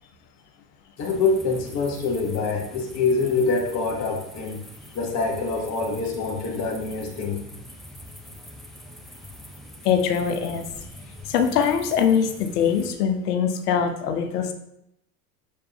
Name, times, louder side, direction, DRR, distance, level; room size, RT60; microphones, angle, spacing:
voice 1, 1.0-4.6 4.9-7.4, left 4 dB, 35° left, -1 dB, 1.3 m, -25 dB
sound 1, 1.0-12.9, equal, ahead, 0.6 m, -43 dB
voice 2, 9.8-10.6 11.3-14.5, left 7 dB, 75° left, 7 dB, 1.0 m, -22 dB
6.6 x 5.1 x 2.8 m, 0.79 s
hypercardioid pair, 105°, 47 cm